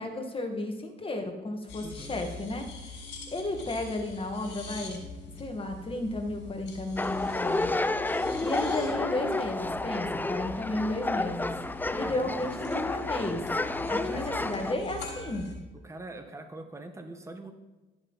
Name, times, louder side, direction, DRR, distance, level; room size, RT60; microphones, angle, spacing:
voice 1, 0.0-3.0 3.3-5.0 5.3-7.7 8.4-11.5 11.9-13.4 13.9-15.5, left 2 dB, 25° left, 3 dB, 1.8 m, -33 dB
sound 1, 1.7-15.6, left 3 dB, 65° left, 4.0 m, -44 dB
voice 2, 1.8-2.2 12.0-12.5 14.0-14.3 15.8-17.5, right 2 dB, 15° right, 6 dB, 1.2 m, -43 dB
sound 2, 7.0-14.7, left 2 dB, 10° left, 0.4 m, -31 dB
13.0 x 7.9 x 4.1 m, 1.1 s
cardioid pair, 90°, 20 cm